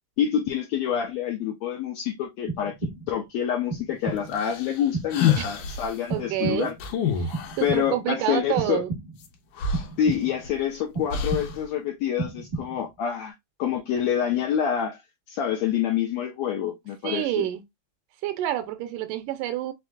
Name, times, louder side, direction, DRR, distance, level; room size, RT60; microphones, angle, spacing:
voice 1, 0.2-2.7 3.1-6.7 7.6-8.8 10.0-13.3 13.6-15.0 15.3-17.5, left 9 dB, 85° left, 1.5 m, -27 dB
sound 1, 2.5-3.3 3.7-4.4 4.9-5.7 6.1-6.9 7.3-8.1 8.6-9.3 9.7-10.5 10.9-11.8 12.2-13.0, right 3 dB, 50° right, 0.9 m, -34 dB
sound 2, 4.3-5.9 6.8-7.7 9.2-9.3 9.6-10.6 11.1-11.6, left 7 dB, 70° left, 2.2 m, -27 dB
voice 2, 6.1-6.7 7.2-9.0 17.0-17.6 18.2-19.7, right 13 dB, 80° right, 2.0 m, -28 dB
5.7 x 3.1 x 2.2 m
omnidirectional pair, 4.0 m